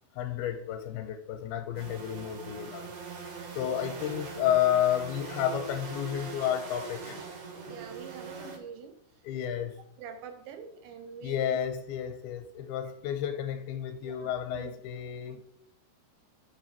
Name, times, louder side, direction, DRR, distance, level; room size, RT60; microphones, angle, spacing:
voice 1, 0.2-2.9 3.5-7.2 9.2-9.7 11.2-15.4, left 10 dB, 80° left, 2.4 m, -31 dB
sound 1, 1.7-8.6, right 5 dB, 50° right, 2.7 m, -41 dB
voice 2, 7.7-9.2 9.6-9.7 10.0-11.6 12.8-12.9 14.1-14.7 15.3-15.4, right 7 dB, 90° right, 3.5 m, -45 dB
8.5 x 6.3 x 4.5 m
omnidirectional pair, 5.0 m